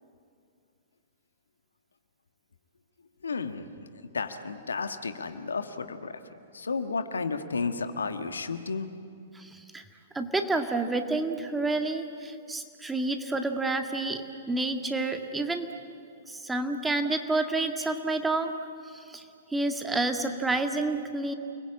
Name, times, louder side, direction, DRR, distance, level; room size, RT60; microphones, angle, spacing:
voice 1, 3.2-3.7 4.1-6.2 6.5-8.9, left 4 dB, 75° left, 8 dB, 1.6 m, -32 dB
voice 2, 9.3-9.8 10.1-15.7 16.3-18.5 18.9-19.2 19.5-21.3, right 2 dB, 10° right, 5 dB, 2.0 m, -29 dB
29.5 x 21.0 x 8.6 m, 2.4 s
figure-of-eight pair, 110°, 0 cm